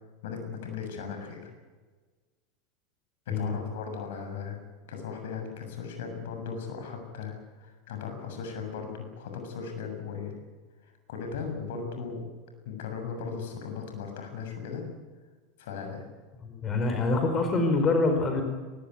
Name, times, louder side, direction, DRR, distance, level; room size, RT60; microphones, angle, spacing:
voice 1, 0.2-1.4 3.3-4.6 4.9-10.3 10.8-12.3 12.7-14.8 15.6-16.0, left 6 dB, 65° left, 5 dB, 7.2 m, -37 dB
voice 2, 16.4-18.4, left 3 dB, 30° left, 4 dB, 4.7 m, -25 dB
20.5 x 20.0 x 9.5 m, 1.4 s
figure-of-eight pair, 85°, 0 cm